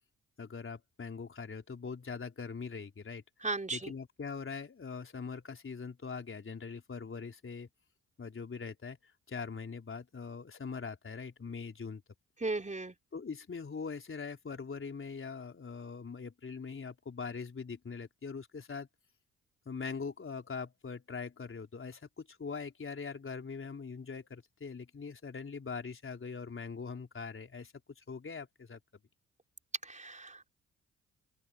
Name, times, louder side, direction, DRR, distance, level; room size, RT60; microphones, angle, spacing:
voice 1, 0.4-3.2 3.7-7.7 8.2-12.0 13.1-18.9 19.7-28.8, left 5 dB, 35° left, 4.1 m, -42 dB
voice 2, 3.4-3.9 12.4-12.9 29.8-30.5, right 3 dB, 20° right, 4.5 m, -36 dB
open air
hypercardioid pair, 40°, 34 cm